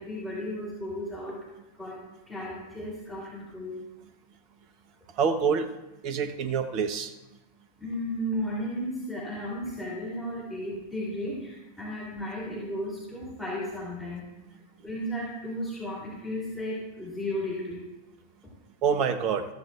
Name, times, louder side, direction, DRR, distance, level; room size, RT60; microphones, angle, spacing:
voice 1, 0.0-1.4 1.7-3.8 7.8-14.3 14.8-17.9, equal, ahead, -7 dB, 3.1 m, -34 dB
voice 2, 5.2-5.7 6.0-7.1 18.8-19.5, right 6 dB, 40° right, 11 dB, 0.9 m, -26 dB
14.5 x 14.0 x 2.4 m, 1.0 s
figure-of-eight pair, 90°, 0 cm